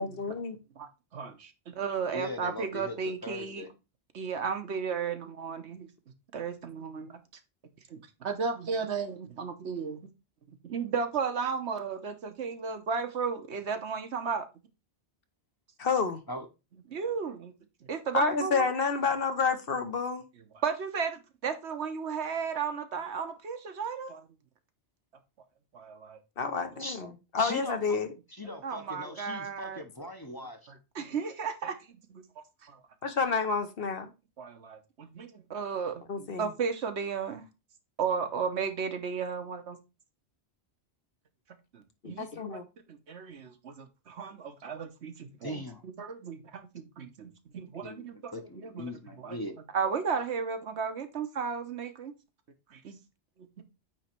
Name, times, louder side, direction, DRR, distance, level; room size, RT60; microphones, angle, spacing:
voice 1, 0.0-0.6 15.8-16.2 18.1-20.2 26.4-28.1 33.0-34.1 36.1-36.5 42.0-42.6, left 5 dB, 60° left, 1.1 m, -29 dB
voice 2, 0.8-3.6 4.1-5.9 6.3-7.2 7.9-10.0 10.5-14.5 16.9-17.5 17.8-18.7 20.6-24.3 25.7-26.2 28.6-29.8 30.7-32.2 32.6-32.8 34.4-37.4 38.0-39.8 41.7-42.3 42.9-48.3 48.6-48.9 49.2-49.4 49.7-52.1 52.7-53.0 53.6-53.7, right 6 dB, 75° right, 1.3 m, -34 dB
voice 3, 2.1-3.7 16.3-16.5 26.8-27.0 27.4-28.0 28.3-30.7 45.4-45.8 47.8-49.6, left 1 dB, 20° left, 0.8 m, -40 dB
9.0 x 3.1 x 4.4 m
omnidirectional pair, 1.1 m